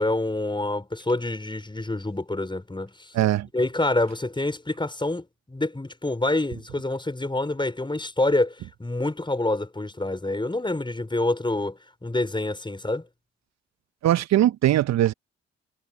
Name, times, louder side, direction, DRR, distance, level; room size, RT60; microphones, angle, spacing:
voice 1, 0.0-3.1 3.5-13.1, left 2 dB, 15° left, 5.7 m, -27 dB
voice 2, 3.1-3.5 14.0-15.1, right 13 dB, 60° right, 1.4 m, -20 dB
figure-of-eight pair, 40°, 30 cm